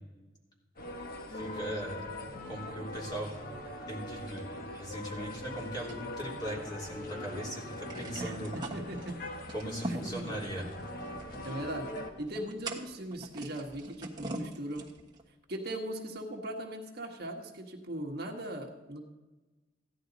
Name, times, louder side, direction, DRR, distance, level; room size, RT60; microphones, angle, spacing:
sound 1, 0.8-12.1, left 1 dB, 50° left, 1.2 m, -42 dB
voice 1, 1.3-2.0 2.5-3.3 3.9-8.5 9.5-10.7, right 1 dB, 25° left, -3 dB, 2.9 m, -39 dB
sound 2, 5.9-7.0 7.3-7.4 7.7-15.2, right 2 dB, 25° right, 1.3 m, -43 dB
voice 2, 8.2-9.2 9.9-10.4 11.4-11.9 12.2-14.9 15.5-19.0, right 1 dB, 55° right, 2 dB, 1.4 m, -39 dB
15.5 x 11.0 x 4.0 m, 1.1 s
head